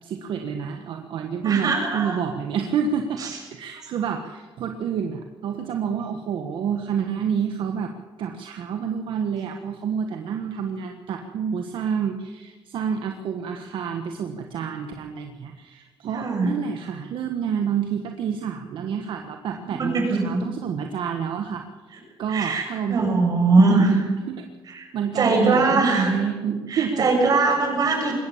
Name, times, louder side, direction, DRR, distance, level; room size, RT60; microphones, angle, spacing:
voice 1, 0.0-7.9 8.2-21.6 22.2-23.2 23.6-24.4 24.9-27.0, right 7 dB, 75° right, 5 dB, 1.5 m, -28 dB
voice 2, 1.4-2.2 3.2-3.3 16.1-16.5 19.8-20.4 22.3-23.9 24.7-24.9 25.2-26.1 26.7-28.1, right 3 dB, 45° right, 1 dB, 7.3 m, -21 dB
21.5 x 17.5 x 7.4 m, 1.4 s
cardioid pair, 125°, 9 cm